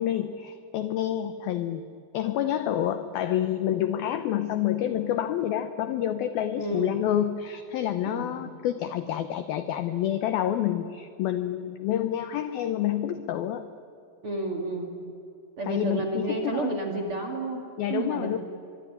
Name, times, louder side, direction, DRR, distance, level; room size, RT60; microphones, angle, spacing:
voice 1, 0.0-1.8 2.1-13.6 15.6-16.8 17.8-18.4, left 11 dB, 85° left, 11 dB, 2.1 m, -28 dB
voice 2, 6.6-7.0 8.1-8.3 14.2-14.9 15.6-17.6 17.9-18.4, right 2 dB, 45° right, 3 dB, 1.9 m, -30 dB
24.0 x 23.5 x 10.0 m, 2.7 s
omnidirectional pair, 5.5 m